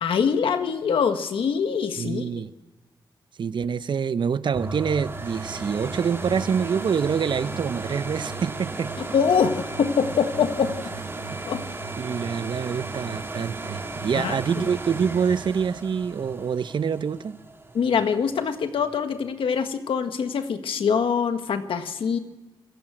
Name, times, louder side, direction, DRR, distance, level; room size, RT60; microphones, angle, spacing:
voice 1, 0.0-2.2 9.0-10.7 11.5-11.6 14.1-14.6 17.7-22.2, left 6 dB, 80° left, 1.5 m, -24 dB
voice 2, 2.0-2.5 3.4-8.9 11.3-11.4 12.0-17.4, right 6 dB, 60° right, 0.8 m, -26 dB
sound 1, 4.5-18.2 18.8-18.9, right 3 dB, 25° right, 3.6 m, -35 dB
27.0 x 15.0 x 7.7 m
cardioid pair, 80°, 9 cm